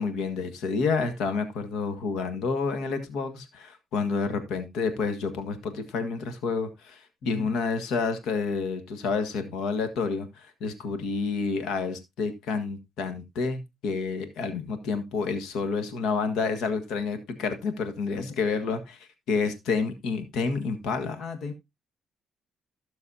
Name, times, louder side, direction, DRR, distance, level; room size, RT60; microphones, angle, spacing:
voice 1, 0.0-21.2, left 4 dB, 85° left, 1.6 m, -29 dB
voice 2, 7.2-7.5 18.1-18.4 21.2-21.5, left 4 dB, 65° left, 1.5 m, -37 dB
15.0 x 6.5 x 2.7 m
cardioid pair, 90°, 0 cm